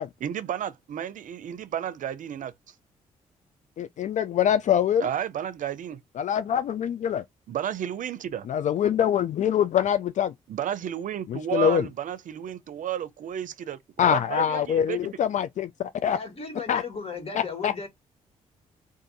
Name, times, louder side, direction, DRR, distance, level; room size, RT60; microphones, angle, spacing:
voice 1, 0.2-2.5 5.0-6.0 7.5-8.5 10.5-13.8 14.1-15.1, right 10 dB, 65° right, 0.5 m, -32 dB
voice 2, 3.8-5.1 6.2-7.2 8.5-10.3 11.3-11.9 14.0-16.2 16.7-16.8 17.4-17.9, left 9 dB, 60° left, 0.4 m, -24 dB
voice 3, 16.1-17.9, left 4 dB, 45° left, 1.8 m, -36 dB
2.6 x 2.6 x 3.8 m
supercardioid pair, 55°, 14 cm